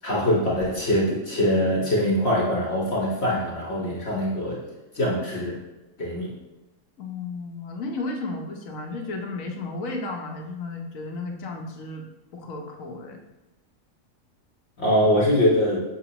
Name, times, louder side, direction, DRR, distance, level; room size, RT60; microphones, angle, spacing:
voice 1, 0.0-4.6 4.9-5.6 6.0-6.3 14.8-15.8, equal, 50° left, -3 dB, 1.4 m, -23 dB
voice 2, 7.0-12.0 12.3-13.2, left 3 dB, 70° left, 1 dB, 1.3 m, -33 dB
7.1 x 5.9 x 2.9 m, 1.0 s
omnidirectional pair, 1.4 m